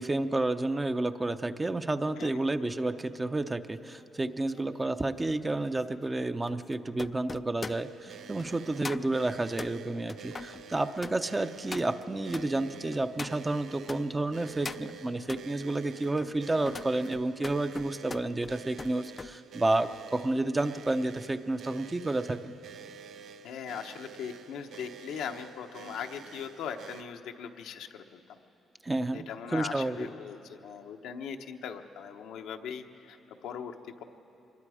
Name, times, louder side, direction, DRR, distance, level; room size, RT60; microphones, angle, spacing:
voice 1, 0.0-22.5 28.8-29.3 29.5-30.1, right 2 dB, 20° right, 9 dB, 0.7 m, -30 dB
voice 2, 2.2-2.6 23.4-28.4 29.1-34.0, left 7 dB, 85° left, 4 dB, 1.0 m, -40 dB
sound 1, 3.4-14.0 14.4-15.5 16.0-19.3 19.7-20.0, left 4 dB, 30° left, 0.4 m, -44 dB
sound 2, 7.7-27.0, right 7 dB, 75° right, 0.7 m, -49 dB
24.5 x 21.5 x 5.0 m, 2.9 s
cardioid pair, 90°, 0 cm